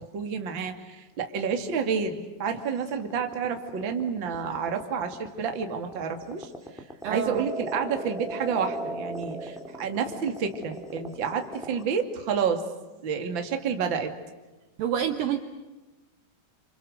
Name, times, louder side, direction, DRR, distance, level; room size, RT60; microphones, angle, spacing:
voice 1, 0.0-6.5 7.1-12.6 13.0-14.1, right 6 dB, 40° right, 5 dB, 1.8 m, -29 dB
sound 1, 2.9-11.8, right 1 dB, ahead, 1.7 m, -37 dB
voice 2, 7.0-7.5 14.8-15.4, right 9 dB, 80° right, 7 dB, 2.0 m, -28 dB
29.5 x 28.0 x 6.6 m, 1.1 s
omnidirectional pair, 5.8 m